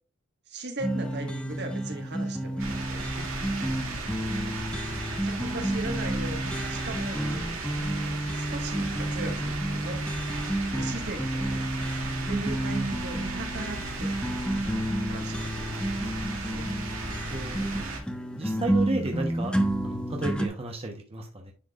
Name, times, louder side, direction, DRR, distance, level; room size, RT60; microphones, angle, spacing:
voice 1, 0.5-3.0 5.2-7.2 8.3-10.1 10.7-11.6 12.3-14.1 15.0-16.7, right 2 dB, 55° right, 5 dB, 1.6 m, -38 dB
sound 1, 0.8-20.5, right 1 dB, 5° left, 1.0 m, -30 dB
sound 2, 2.6-18.0, right 2 dB, 75° right, 3.0 m, -36 dB
voice 2, 17.3-17.7 18.4-19.5 19.8-21.5, right 2 dB, 30° right, 1 dB, 1.0 m, -33 dB
10.0 x 4.6 x 2.4 m, 0.35 s
head